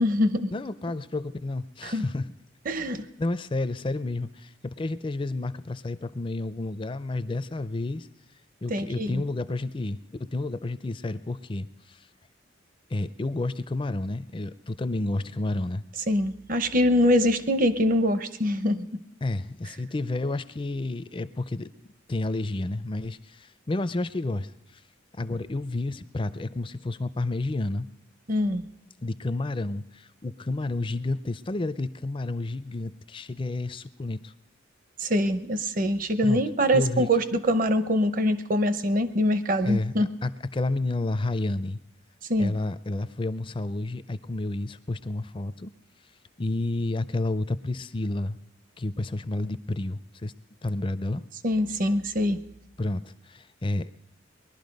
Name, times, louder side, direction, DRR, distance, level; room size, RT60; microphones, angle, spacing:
voice 1, 0.0-0.5 1.8-2.0 2.7-3.1 8.7-9.2 16.1-19.0 28.3-28.6 35.0-40.1 42.3-42.5 51.4-52.4, equal, 45° right, 12 dB, 0.8 m, -24 dB
voice 2, 0.5-2.3 3.2-8.1 8.6-12.0 12.9-15.8 19.2-21.7 22.1-24.8 25.1-27.9 29.0-34.3 36.2-36.4 36.7-37.1 39.6-41.8 42.4-45.7 46.4-48.4 48.8-50.3 50.6-51.2 52.8-53.9, left 2 dB, 25° left, 14 dB, 0.5 m, -30 dB
20.5 x 12.0 x 5.3 m, 0.87 s
head